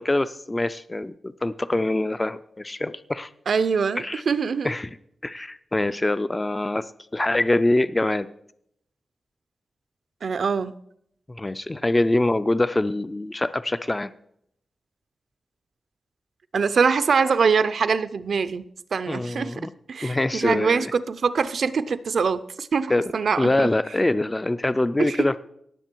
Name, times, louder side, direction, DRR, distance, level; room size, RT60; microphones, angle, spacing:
voice 1, 0.0-3.3 4.0-4.2 4.6-4.9 5.2-8.3 11.3-14.1 19.1-19.7 20.0-20.9 22.9-23.0 23.4-25.4, left 2 dB, 15° left, 14 dB, 0.3 m, -24 dB
voice 2, 3.5-4.7 10.2-10.7 16.5-18.6 18.9-19.5 19.9-23.7 25.0-25.2, right 5 dB, 65° right, 14 dB, 0.5 m, -23 dB
17.5 x 7.4 x 4.5 m, 0.71 s
wide cardioid pair, 160°, 0 cm